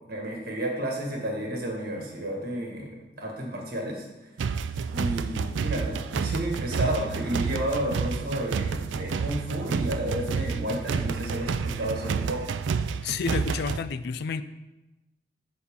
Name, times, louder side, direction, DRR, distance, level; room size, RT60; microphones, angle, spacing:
voice 1, 0.1-4.1 4.9-12.5, right 1 dB, 55° right, 0 dB, 1.6 m, -31 dB
sound 1, 4.4-13.8, right 5 dB, 80° right, 0.4 m, -29 dB
voice 2, 13.0-14.4, left 5 dB, 60° left, 13 dB, 0.4 m, -30 dB
11.0 x 4.0 x 3.6 m, 1.0 s
head